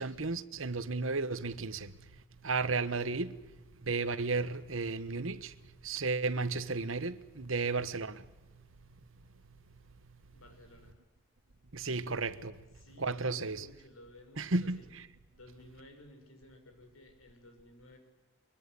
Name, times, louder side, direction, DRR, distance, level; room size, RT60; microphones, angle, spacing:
voice 1, 0.0-1.9 2.4-3.4 3.9-5.5 5.8-8.2 11.7-12.5 13.0-13.7 14.4-15.0, right 3 dB, 75° right, 1.2 m, -33 dB
voice 2, 10.3-11.0 12.8-14.9 15.4-18.0, left 1 dB, 85° left, 6.5 m, -55 dB
23.5 x 23.0 x 9.8 m
head